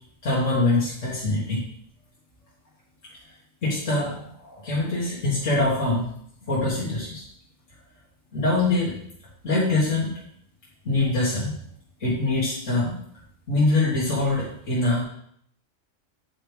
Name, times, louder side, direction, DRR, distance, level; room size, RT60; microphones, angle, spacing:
voice 1, 0.2-1.7 3.6-6.0 6.5-7.2 8.3-9.0 9.4-10.1 10.9-11.6 12.0-12.9 13.5-15.0, left 2 dB, 80° left, -7 dB, 2.0 m, -24 dB
8.5 x 4.7 x 3.4 m, 0.68 s
omnidirectional pair, 1.3 m